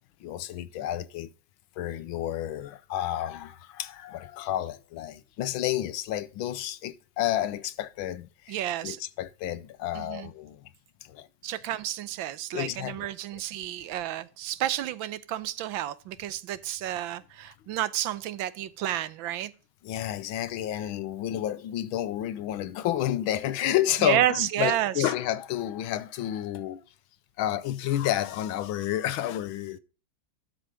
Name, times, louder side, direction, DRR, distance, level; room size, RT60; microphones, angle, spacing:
voice 1, 0.2-1.3 1.8-10.6 11.0-11.3 12.5-13.4 19.8-26.8 27.4-29.8, left 12 dB, 85° left, 1.5 m, -30 dB
voice 2, 8.5-9.0 9.9-10.3 11.4-19.5 24.0-25.1, right 12 dB, 80° right, 1.4 m, -30 dB
12.5 x 5.1 x 5.0 m
omnidirectional pair, 2.2 m